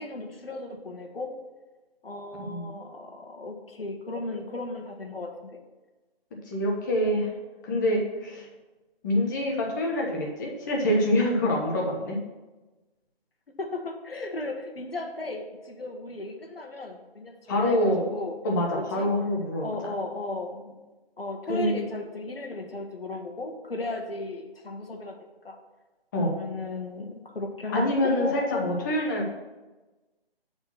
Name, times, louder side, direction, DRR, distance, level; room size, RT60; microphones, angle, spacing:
voice 1, 0.0-1.3 2.0-5.6 8.1-8.3 13.6-18.3 18.7-19.1 19.6-20.8 21.2-25.1 25.4-25.6 26.2-28.7, left 2 dB, 70° left, 3 dB, 1.4 m, -35 dB
voice 2, 2.4-2.7 6.5-7.3 7.6-8.5 9.0-12.2 17.5-18.1 18.4-19.7 21.5-21.7 26.1-26.3 27.7-29.3, left 1 dB, 20° left, -1 dB, 1.0 m, -26 dB
7.9 x 4.4 x 5.8 m, 1.1 s
figure-of-eight pair, 145°, 31 cm